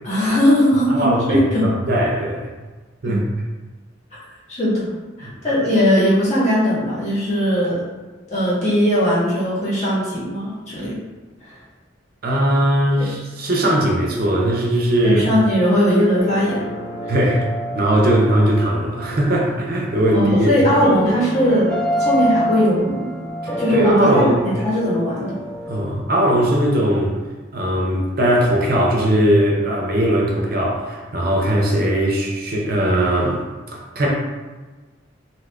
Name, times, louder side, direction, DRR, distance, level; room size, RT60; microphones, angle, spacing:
voice 1, 0.0-1.6 3.0-3.2 4.1-4.2 4.5-4.9 5.2-7.7 8.3-11.0 11.5-11.6 13.0-13.1 15.0-16.6 17.0-17.1 20.1-21.7 22.0-23.1 23.6-25.3, equal, 35° left, -8 dB, 1.0 m, -19 dB
voice 2, 0.9-2.5 3.0-3.2 5.2-5.3 12.2-15.2 17.1-17.5 17.7-20.5 23.4-24.4 25.7-27.2 27.5-33.4 33.7-34.1, right 1 dB, 50° right, -2 dB, 0.5 m, -19 dB
sound 1, 16.2-25.8, equal, 5° left, 0.3 m, -27 dB
2.7 x 2.4 x 3.3 m, 1.3 s
head